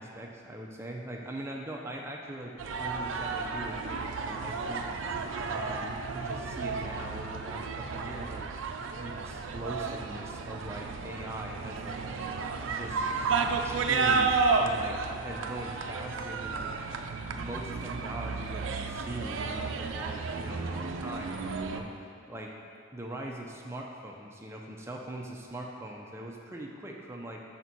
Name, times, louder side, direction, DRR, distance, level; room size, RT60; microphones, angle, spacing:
voice 1, 0.0-2.5 2.8-4.9 5.4-8.5 9.0-12.0 12.6-13.1 13.6-16.7 17.3-21.9 22.3-22.5 22.9-27.4, right 1 dB, 15° right, 0 dB, 0.5 m, -41 dB
sound 1, 2.6-21.8, right 4 dB, 75° right, 0.4 m, -32 dB
5.1 x 4.2 x 5.9 m, 2.6 s
head